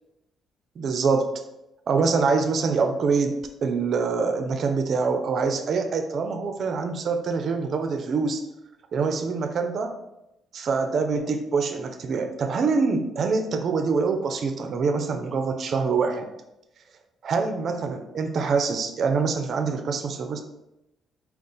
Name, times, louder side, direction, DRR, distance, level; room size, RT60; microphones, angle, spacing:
voice 1, 0.8-1.3 1.9-8.4 8.9-9.9 10.5-16.3 17.2-20.4, right 4 dB, 60° right, 7 dB, 0.4 m, -25 dB
3.8 x 2.4 x 3.7 m, 0.90 s
cardioid pair, 90°, 0 cm